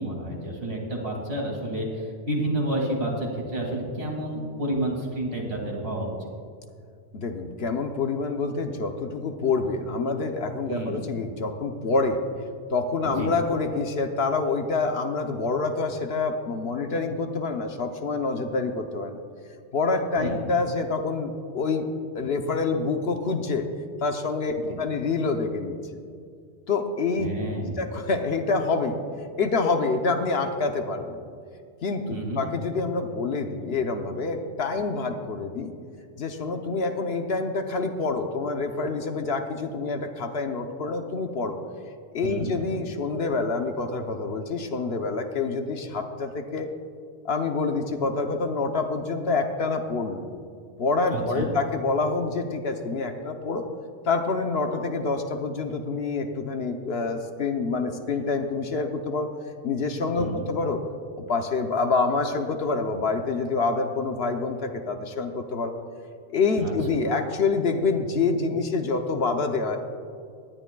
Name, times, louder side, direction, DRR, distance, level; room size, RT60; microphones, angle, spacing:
voice 1, 0.0-6.3 10.7-11.0 13.2-13.3 20.2-20.4 24.7-24.8 27.2-27.8 32.1-32.4 42.2-42.5 51.1-51.5 60.2-60.5 66.6-66.7, right 1 dB, 60° right, -1 dB, 2.7 m, -30 dB
voice 2, 7.1-12.2 12.7-19.2 19.7-21.9 22.1-23.7 24.0-25.7 26.7-27.3 27.8-29.0 29.4-31.2 31.8-35.7 36.2-41.6 42.1-46.7 47.2-50.2 50.8-53.6 54.0-59.3 59.6-60.8 61.2-65.7 66.3-69.8, left 4 dB, 60° left, 5 dB, 1.0 m, -27 dB
19.0 x 11.0 x 2.3 m, 2.3 s
omnidirectional pair, 1.2 m